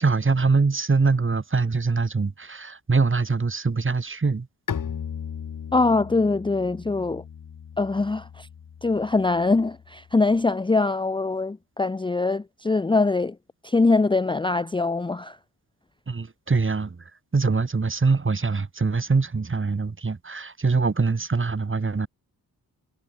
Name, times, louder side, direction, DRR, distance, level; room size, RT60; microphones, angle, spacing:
voice 1, 0.0-4.5 16.1-17.0 17.3-22.1, right 4 dB, 35° right, 2.7 m, -23 dB
Bowed string instrument, 4.7-10.3, left 7 dB, 60° left, 1.8 m, -37 dB
voice 2, 5.7-7.2 7.8-8.5 8.8-13.4 13.6-15.4, left 3 dB, 15° left, 0.5 m, -23 dB
cardioid pair, 85°, 37 cm